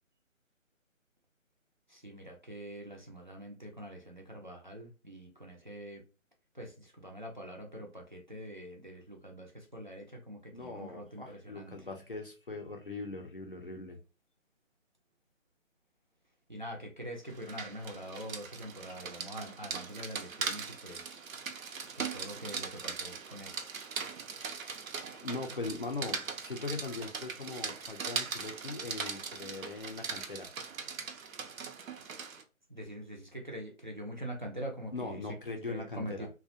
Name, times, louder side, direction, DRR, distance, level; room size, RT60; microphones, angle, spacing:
voice 1, 1.9-6.0 6.5-11.9 16.5-21.2 22.0-23.6 32.7-35.3 35.7-36.3, equal, 40° right, 0.4 m, -44 dB
voice 2, 10.5-14.0 24.3-24.7 25.1-30.5 34.9-36.3, left 3 dB, 45° left, 0.4 m, -40 dB
Rain, 17.3-32.4, right 5 dB, 85° right, 0.6 m, -40 dB
2.4 x 2.1 x 2.6 m
figure-of-eight pair, 165°, 40 cm